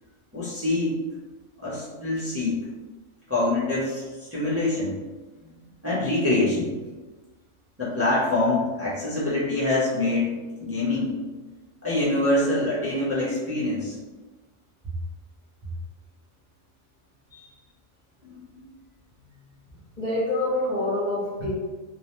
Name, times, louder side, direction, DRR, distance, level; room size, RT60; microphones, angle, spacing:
voice 1, 0.3-1.0 1.6-2.7 3.3-4.9 5.4-5.5 5.8-6.8 7.8-11.2 11.8-14.0 17.3-17.5 18.2-18.5, left 2 dB, 20° right, -9 dB, 0.4 m, -25 dB
voice 2, 20.0-21.5, left 1 dB, 50° left, -8 dB, 0.5 m, -26 dB
2.7 x 2.0 x 3.0 m, 1.3 s
omnidirectional pair, 1.3 m